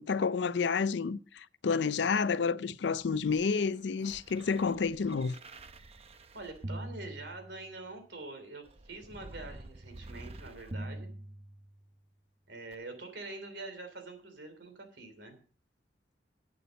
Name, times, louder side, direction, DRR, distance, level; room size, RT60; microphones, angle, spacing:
voice 1, 0.0-5.4, left 5 dB, 75° left, 0.5 m, -30 dB
sound 1, 3.0-7.9 8.6-12.0 12.7-12.8, right 1 dB, 35° right, 0.7 m, -46 dB
voice 2, 6.3-11.1 12.5-15.4, right 2 dB, 70° right, 3.1 m, -45 dB
11.0 x 8.6 x 5.1 m
head